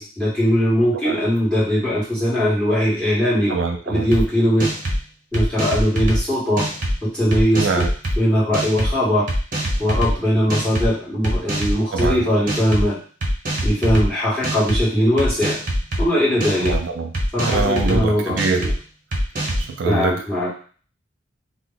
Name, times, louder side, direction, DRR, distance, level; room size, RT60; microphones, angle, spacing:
voice 1, 0.0-3.5 3.9-4.7 5.3-6.6 7.0-7.9 8.2-9.3 9.8-13.0 13.6-15.6 16.0-16.7 17.3-18.7 19.8-20.5, equal, 5° left, -8 dB, 1.5 m, -20 dB
voice 2, 3.5-4.1 7.6-7.9 11.9-12.3 16.6-17.1 17.5-18.6 19.7-20.2, right 4 dB, 80° right, 4 dB, 0.4 m, -23 dB
sound 1, 4.1-4.2 4.6-5.0 5.3-6.2 6.6-6.9 7.3-8.2 8.5-8.9 9.3-10.1 10.5-10.9 11.2-12.1 12.5-12.9 13.2-14.1 14.4-14.8 15.2-16.0 16.4-16.8 17.1-18.0 18.4-18.7 19.1-19.7, right 1 dB, 45° right, 0.8 m, -23 dB
2.8 x 2.1 x 3.8 m, 0.41 s
head